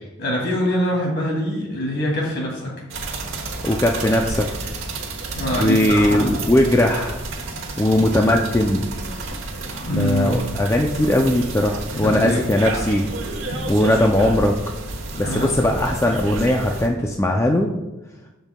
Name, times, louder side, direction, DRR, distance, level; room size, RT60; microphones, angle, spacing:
voice 1, 0.2-2.7 5.3-6.4 9.6-10.4 11.9-12.5 15.2-15.5, equal, 55° left, -1 dB, 2.4 m, -24 dB
sound 1, 2.9-16.9, right 2 dB, 65° right, 1.2 m, -30 dB
voice 2, 3.6-4.6 5.6-7.2 7.8-8.9 9.9-13.1 13.7-14.6 15.2-17.7, left 1 dB, 15° left, 2 dB, 0.4 m, -19 dB
13.0 x 5.3 x 2.2 m, 1.0 s
head